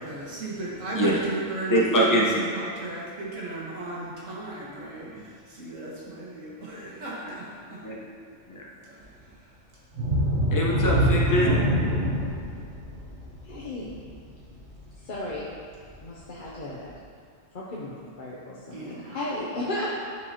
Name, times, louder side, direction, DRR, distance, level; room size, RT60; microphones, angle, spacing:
voice 1, 0.0-7.8 8.8-9.0 18.7-19.3, right 2 dB, 85° right, -6 dB, 1.8 m, -35 dB
voice 2, 1.7-2.2 7.8-8.0 8.5-8.7 10.5-11.5, equal, 15° left, -3 dB, 0.8 m, -23 dB
sound 1, 9.9-15.4 15.8-16.0 16.5-16.6, equal, 60° right, 1.3 m, -25 dB
voice 3, 13.4-13.9 15.0-15.5 16.0-16.9 17.5-19.9, left 1 dB, 45° left, -6 dB, 0.8 m, -34 dB
9.8 x 4.7 x 2.8 m, 2.1 s
omnidirectional pair, 1.3 m